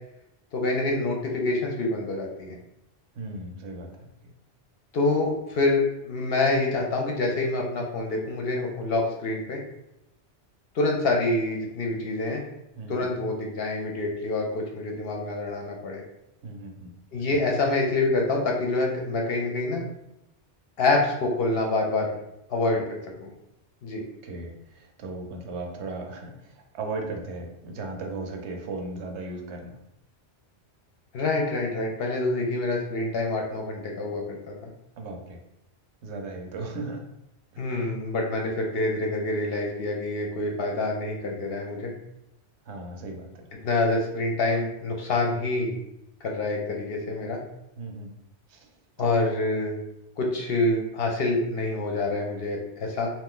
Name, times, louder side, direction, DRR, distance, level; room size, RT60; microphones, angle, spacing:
voice 1, 0.5-2.5 4.9-9.6 10.7-12.4 12.9-16.0 17.1-19.8 20.8-22.1 22.5-23.3 23.8-24.0 31.1-34.5 37.6-41.9 43.6-45.7 46.2-47.4 49.0-49.8 50.2-53.1, left 2 dB, 65° left, 1 dB, 0.7 m, -26 dB
voice 2, 3.2-4.3 12.8-13.1 16.4-16.9 17.3-17.4 24.2-29.8 35.0-35.4 36.0-37.0 42.7-43.4 47.8-48.2 48.5-48.7 49.0-49.2, right 2 dB, 75° right, 2 dB, 0.9 m, -36 dB
2.5 x 2.3 x 3.6 m, 0.84 s
omnidirectional pair, 1.2 m